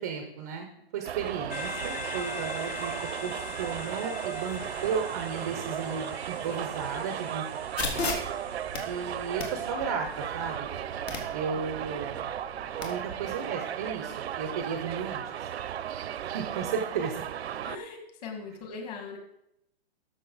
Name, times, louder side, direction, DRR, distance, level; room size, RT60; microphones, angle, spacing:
voice 1, 0.0-2.9 3.2-7.4 7.8-8.1 8.8-10.7 11.3-12.3 12.8-15.3 16.2-17.2, right 6 dB, 15° right, 5 dB, 0.4 m, -34 dB
Subway metro underground, 1.0-17.8, right 10 dB, 80° right, 0.6 m, -35 dB
sound 1, 1.5-9.7, left 4 dB, 15° left, 0.7 m, -43 dB
sound 2, 7.8-12.8, left 3 dB, 70° left, 2.2 m, -37 dB
voice 2, 17.6-19.2, left 4 dB, 40° left, 4 dB, 1.9 m, -40 dB
12.5 x 6.4 x 3.9 m, 0.81 s
hypercardioid pair, 155°, 32 cm